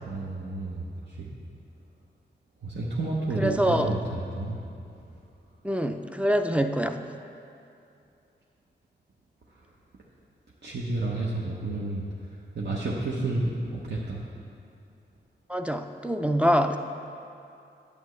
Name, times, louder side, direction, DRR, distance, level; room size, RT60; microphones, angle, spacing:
voice 1, 0.1-0.8 1.1-1.3 2.6-4.6 10.6-12.0 12.5-14.2, right 2 dB, 70° right, -5 dB, 0.9 m, -30 dB
voice 2, 3.4-3.9 5.6-7.0 15.5-16.8, equal, 5° right, 6 dB, 0.4 m, -25 dB
10.5 x 8.0 x 3.2 m, 2.6 s
wide cardioid pair, 90°, 18 cm